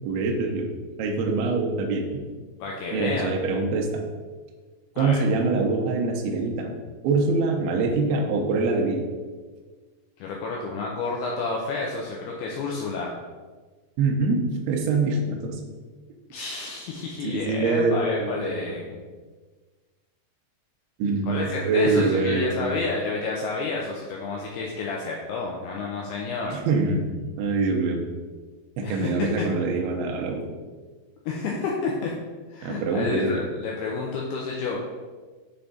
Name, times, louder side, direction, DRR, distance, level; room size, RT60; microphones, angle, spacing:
voice 1, 0.0-0.7 1.0-2.2 2.9-3.9 5.0-6.7 7.0-9.1 14.0-15.6 17.2-18.6 21.0-22.7 26.5-28.0 28.8-30.4 32.6-33.4, right 3 dB, 85° right, 1 dB, 2.3 m, -24 dB
voice 2, 2.6-3.3 5.0-5.2 10.2-13.1 16.3-19.0 21.2-26.6 28.8-29.3 31.3-32.1 32.5-34.8, left 4 dB, 85° left, -2 dB, 2.3 m, -30 dB
7.2 x 3.4 x 3.9 m, 1.4 s
omnidirectional pair, 5.4 m